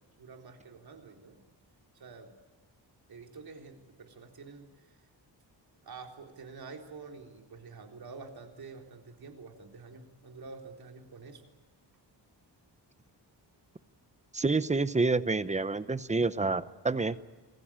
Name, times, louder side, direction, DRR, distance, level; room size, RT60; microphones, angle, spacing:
voice 1, 0.2-1.4 1.9-2.3 3.1-5.0 5.8-11.4, right 4 dB, 60° right, 3 dB, 3.9 m, -48 dB
voice 2, 14.3-17.2, right 3 dB, 15° right, 14 dB, 0.7 m, -28 dB
27.5 x 20.5 x 8.8 m, 1.2 s
wide cardioid pair, 160°, 42 cm